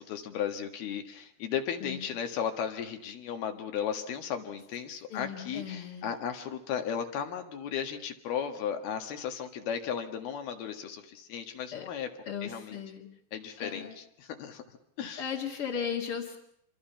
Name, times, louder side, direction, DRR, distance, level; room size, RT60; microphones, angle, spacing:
voice 1, 0.0-12.1 12.4-12.8 13.3-14.6 15.0-15.3, left 8 dB, 70° left, 6 dB, 3.6 m, -35 dB
voice 2, 5.1-6.1 11.7-11.9 12.3-13.1 13.6-14.0 15.2-16.4, left 7 dB, 40° left, -3 dB, 2.5 m, -36 dB
27.0 x 24.0 x 5.8 m, 0.74 s
omnidirectional pair, 4.8 m